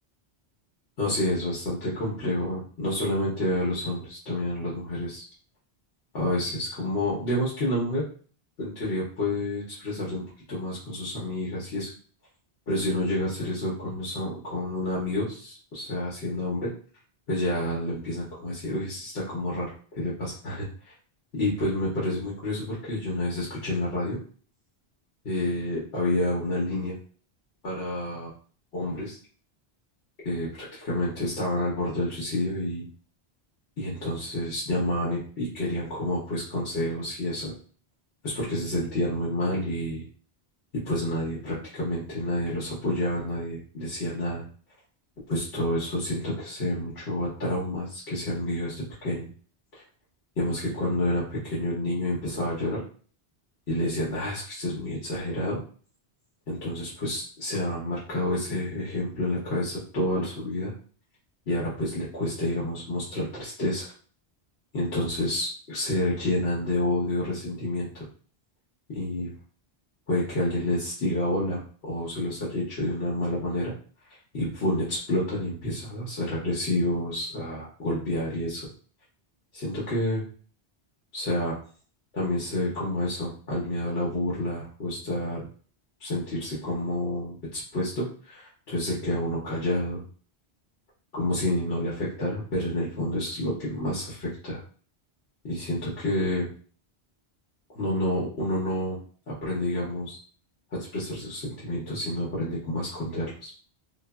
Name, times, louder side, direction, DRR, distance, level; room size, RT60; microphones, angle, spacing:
voice 1, 1.0-5.2 6.1-8.0 8.6-10.2 10.5-11.9 12.7-16.7 17.3-20.9 21.3-24.2 25.2-27.0 27.6-28.3 28.7-29.2 30.2-32.8 33.8-37.5 38.2-40.0 40.8-44.4 45.3-49.3 49.7-49.8 50.4-52.8 53.7-55.6 56.5-60.7 61.5-63.9 64.7-68.0 68.9-69.3 70.1-73.7 74.3-78.7 79.5-80.2 81.1-81.5 82.1-85.4 86.0-90.0 91.1-94.6 95.4-96.5 97.7-99.0 99.3-100.2 100.7-103.5, left 1 dB, 65° left, -7 dB, 1.0 m, -29 dB
3.1 x 2.0 x 2.2 m, 0.43 s
omnidirectional pair, 1.1 m